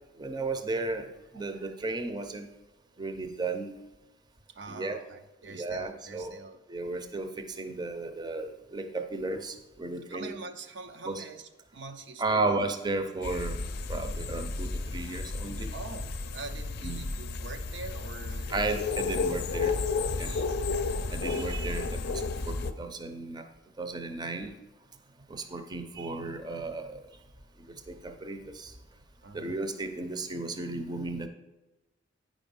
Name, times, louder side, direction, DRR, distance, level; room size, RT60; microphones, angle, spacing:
voice 1, 0.2-2.5 3.0-3.7 4.7-5.0 5.5-6.3 6.7-10.3 11.1-11.2 12.2-13.6 13.9-15.7 16.8-17.0 18.5-19.8 20.1-20.3 21.1-23.5 23.8-24.5 25.3-27.0 27.7-28.7 29.3-31.3, right 3 dB, 20° right, 7 dB, 0.6 m, -34 dB
voice 2, 1.3-2.0 2.9-3.0 4.5-6.6 8.0-8.2 10.1-12.7 15.1-15.5 15.7-18.5 19.1-19.4 20.2-20.6 29.2-29.6, right 3 dB, 65° right, 7 dB, 0.6 m, -45 dB
sound 1, 13.2-22.7, left 3 dB, 55° left, 0.5 m, -32 dB
9.3 x 5.1 x 5.3 m, 1.1 s
head